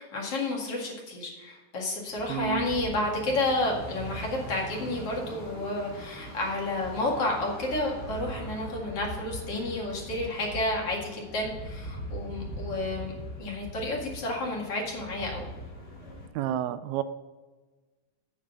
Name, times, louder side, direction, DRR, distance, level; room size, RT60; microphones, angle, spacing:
voice 1, 0.0-13.1 13.4-15.5, left 2 dB, 50° left, -2 dB, 2.8 m, -31 dB
sound 1, 2.1-16.3, equal, 25° left, 1.6 m, -41 dB
voice 2, 2.3-2.7 16.4-17.0, right 11 dB, 80° right, 12 dB, 1.8 m, -30 dB
8.7 x 5.0 x 6.7 m, 1.3 s
omnidirectional pair, 3.5 m